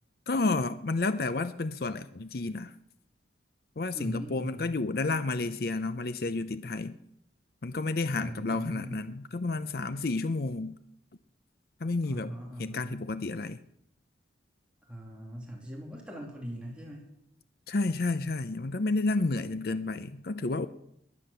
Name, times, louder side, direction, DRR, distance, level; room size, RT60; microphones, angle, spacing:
voice 1, 0.3-2.7 3.8-6.9 7.6-10.7 11.8-12.3 12.6-13.6 17.7-20.7, left 3 dB, 55° left, 12 dB, 0.6 m, -30 dB
voice 2, 3.9-4.8 8.2-9.1 12.1-13.0 14.9-17.1, equal, 5° right, -1 dB, 2.8 m, -40 dB
22.0 x 9.5 x 6.8 m, 0.79 s
head